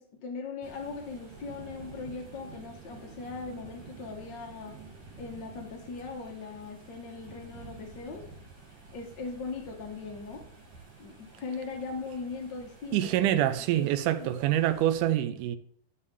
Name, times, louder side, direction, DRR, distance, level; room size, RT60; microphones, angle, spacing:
voice 1, 0.0-4.8 5.2-8.2 8.9-10.5 11.0-13.1 13.7-13.9 14.2-14.3, left 4 dB, 75° left, 1.0 m, -39 dB
sound 1, 0.6-15.0, right 4 dB, 60° right, 4.3 m, -50 dB
voice 2, 12.9-15.6, right 12 dB, 85° right, 2.2 m, -26 dB
12.5 x 6.7 x 3.6 m
omnidirectional pair, 3.7 m